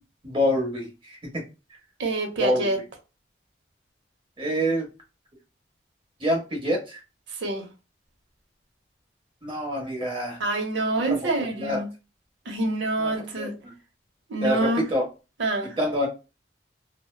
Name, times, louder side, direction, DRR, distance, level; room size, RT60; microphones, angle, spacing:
voice 1, 0.2-1.4 2.4-2.7 4.4-4.9 6.2-7.0 9.4-10.4 11.1-11.3 11.6-11.8 13.0-13.5 14.4-15.1 15.8-16.1, equal, 30° right, 0.8 m, -26 dB
voice 2, 2.0-2.8 7.3-7.7 10.4-11.9 12.5-13.6 14.3-14.8 15.4-15.8, right 2 dB, 75° right, 0.6 m, -26 dB
2.7 x 2.1 x 2.2 m
head